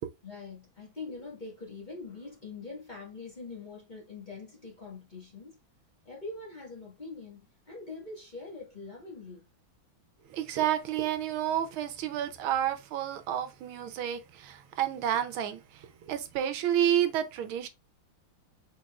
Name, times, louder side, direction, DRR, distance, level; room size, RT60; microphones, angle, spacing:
voice 1, 0.2-5.6 6.0-9.5, left 3 dB, 25° left, 1.4 m, -43 dB
voice 2, 10.2-17.7, right 10 dB, 80° right, 1.5 m, -30 dB
4.6 x 4.3 x 2.3 m
omnidirectional pair, 2.2 m